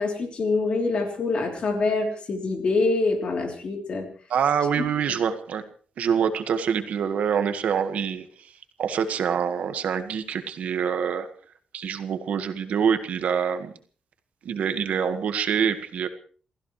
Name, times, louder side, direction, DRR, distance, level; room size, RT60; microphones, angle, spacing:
voice 1, 0.0-4.1 4.8-4.9, left 3 dB, 45° left, 3 dB, 3.4 m, -25 dB
voice 2, 4.3-5.6 6.0-8.3 8.8-11.3 11.7-13.7 14.4-16.1, right 7 dB, 75° right, 8 dB, 1.7 m, -25 dB
28.5 x 15.5 x 3.3 m, 0.42 s
wide cardioid pair, 170°, 2 cm